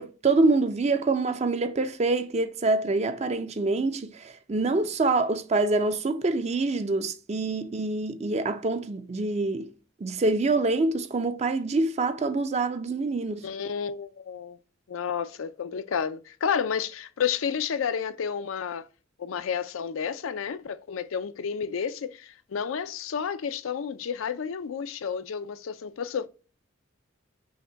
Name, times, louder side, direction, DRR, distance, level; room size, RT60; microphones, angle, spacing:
voice 1, 0.0-4.1 4.5-9.7 10.0-13.5, right 3 dB, 35° right, 0.4 m, -25 dB
voice 2, 13.4-14.6 14.9-18.9 19.2-26.3, left 7 dB, 85° left, 0.4 m, -31 dB
5.7 x 2.2 x 3.9 m
head